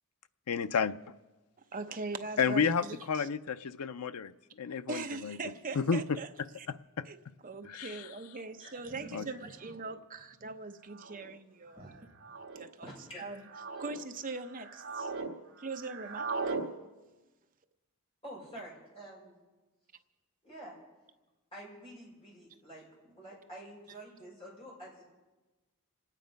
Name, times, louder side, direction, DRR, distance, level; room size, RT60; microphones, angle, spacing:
voice 1, 0.5-1.0 2.4-4.3 4.6-5.4 5.8-6.0 7.0-7.1 7.6-8.1 9.1-9.3, left 6 dB, 85° left, 13 dB, 0.5 m, -31 dB
voice 2, 1.7-3.3 4.9-6.3 6.6-6.7 7.0-7.2 7.4-12.1 12.5-12.9 13.2-13.4 13.8-15.1 15.6-16.6, right 3 dB, 35° right, 7 dB, 0.8 m, -41 dB
voice 3, 8.6-9.4 11.8-11.9 12.8-13.2 18.2-19.4 20.4-20.8 21.5-25.0, right 1 dB, 25° left, -5 dB, 6.4 m, -48 dB
sound 1, 8.6-8.7 9.7-10.0 10.9-11.3 12.2-12.6 13.3-14.0 14.4-15.3 15.6-16.7, right 4 dB, 65° right, 1.4 m, -39 dB
27.5 x 9.2 x 5.2 m, 1.2 s
head